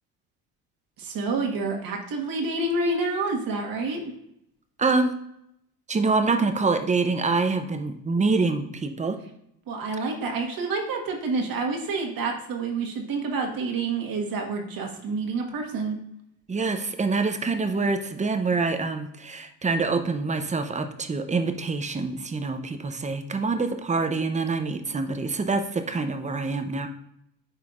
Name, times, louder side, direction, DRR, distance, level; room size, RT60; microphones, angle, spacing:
voice 1, 1.0-4.1 9.7-16.0, right 3 dB, 50° right, 2 dB, 1.6 m, -28 dB
voice 2, 4.8-5.1 5.9-9.2 16.5-26.9, right 3 dB, 15° right, 8 dB, 0.7 m, -25 dB
10.5 x 4.4 x 2.5 m, 0.77 s
supercardioid pair, 95°, 43 cm